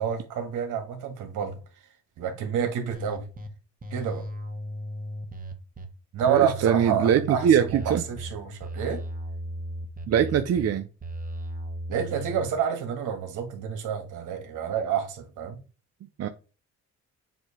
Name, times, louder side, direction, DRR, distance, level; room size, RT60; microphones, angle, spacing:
voice 1, 0.0-1.6 2.2-3.3 3.9-4.2 6.1-9.0 11.9-15.6, right 8 dB, 85° right, 1.8 m, -29 dB
sound 1, 2.9-3.5 3.8-5.9 6.2-8.3 8.6-10.7 11.0-12.5, right 1 dB, 30° right, 1.4 m, -36 dB
voice 2, 6.3-8.0 10.1-10.8 16.2-16.3, right 8 dB, 55° right, 0.7 m, -22 dB
7.9 x 2.9 x 4.8 m
cardioid pair, 90°, 30 cm